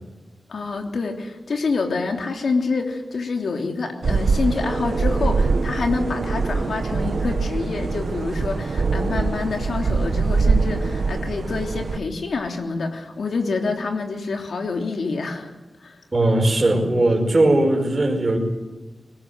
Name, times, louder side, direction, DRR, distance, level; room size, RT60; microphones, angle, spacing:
voice 1, 0.5-15.5 15.8-16.0, left 4 dB, 80° left, 3 dB, 3.2 m, -27 dB
sound 1, 4.0-12.0, right 4 dB, 65° right, 1.5 m, -23 dB
voice 2, 16.1-18.4, right 2 dB, 30° right, 1 dB, 5.1 m, -18 dB
21.5 x 20.0 x 7.8 m, 1.2 s
wide cardioid pair, 140°, 0 cm